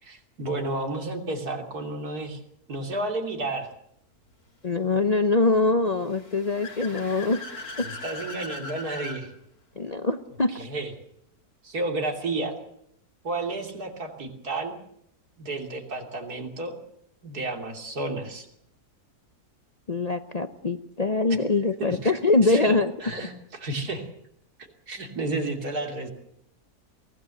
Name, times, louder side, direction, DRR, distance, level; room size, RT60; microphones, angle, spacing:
voice 1, 0.0-2.4 2.7-3.7 7.8-9.3 10.5-10.9 11.6-12.6 13.2-14.8 15.4-16.8 17.2-18.5 21.8-24.1 24.6-26.1, right 2 dB, 80° right, 4 dB, 3.5 m, -32 dB
voice 2, 4.6-7.4 7.8-7.9 9.8-10.5 19.9-22.9, left 3 dB, 35° left, 9 dB, 0.8 m, -23 dB
Car / Accelerating revving vroom, 6.0-9.2, left 2 dB, 70° left, 4.0 m, -39 dB
23.5 x 16.5 x 7.9 m, 0.74 s
omnidirectional pair, 1.6 m